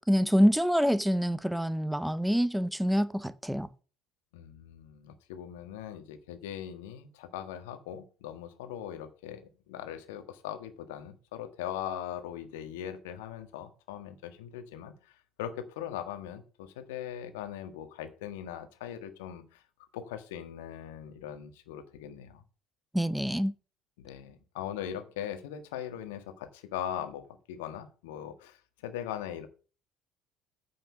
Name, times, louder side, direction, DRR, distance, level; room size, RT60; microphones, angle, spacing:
voice 1, 0.1-3.7 22.9-23.5, equal, ahead, 0.7 m, -26 dB
voice 2, 4.3-9.4 9.7-15.1 15.4-19.6 19.9-22.4 24.0-29.5, left 10 dB, 65° left, 1.4 m, -40 dB
9.3 x 6.3 x 6.2 m
figure-of-eight pair, 60°, 0 cm